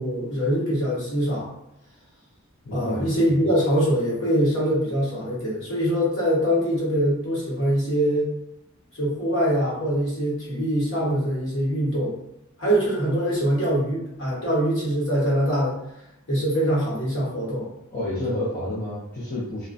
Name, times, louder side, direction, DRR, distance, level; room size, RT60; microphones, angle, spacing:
voice 1, 0.0-1.5 2.7-8.3 9.0-12.1 12.6-15.8 16.3-17.7, equal, 60° left, -6 dB, 1.1 m, -23 dB
voice 2, 2.6-3.1 17.9-19.7, left 1 dB, 40° left, -8 dB, 0.5 m, -29 dB
2.3 x 2.2 x 2.5 m, 0.85 s
head